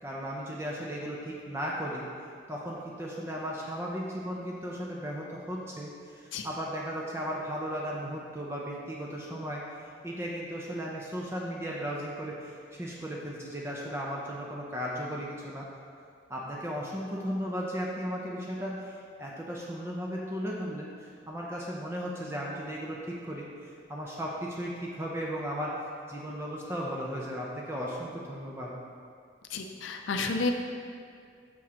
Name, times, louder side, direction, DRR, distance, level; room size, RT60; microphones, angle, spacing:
voice 1, 0.0-2.1 2.5-9.6 10.0-15.7 16.3-25.8 26.1-28.7, equal, 15° right, -3 dB, 0.5 m, -36 dB
voice 2, 29.5-30.5, left 3 dB, 80° left, 5 dB, 0.5 m, -31 dB
6.1 x 5.8 x 2.8 m, 2.2 s
head